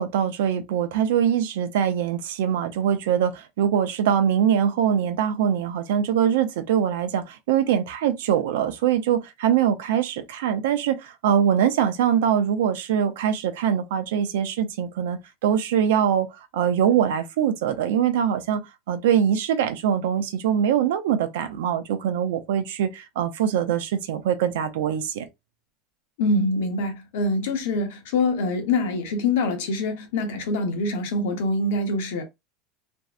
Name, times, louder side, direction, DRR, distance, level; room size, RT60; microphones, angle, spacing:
voice 1, 0.0-18.6 18.9-25.3, right 9 dB, 90° right, 0.4 m, -23 dB
voice 2, 26.2-32.2, left 2 dB, 85° left, 0.8 m, -25 dB
2.6 x 2.1 x 2.4 m
supercardioid pair, 140°, 0 cm